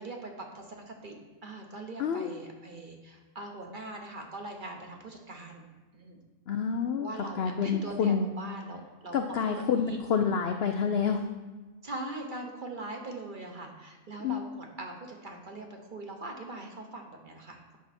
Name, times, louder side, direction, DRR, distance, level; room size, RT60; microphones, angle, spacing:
voice 1, 0.0-5.6 5.9-6.2 7.0-10.0 11.8-17.8, right 2 dB, 40° right, 2 dB, 1.1 m, -42 dB
voice 2, 6.5-7.1 7.4-8.2 9.1-11.2 14.2-14.4, left 6 dB, 70° left, 6 dB, 0.6 m, -28 dB
10.0 x 5.9 x 4.2 m, 1.3 s
omnidirectional pair, 1.6 m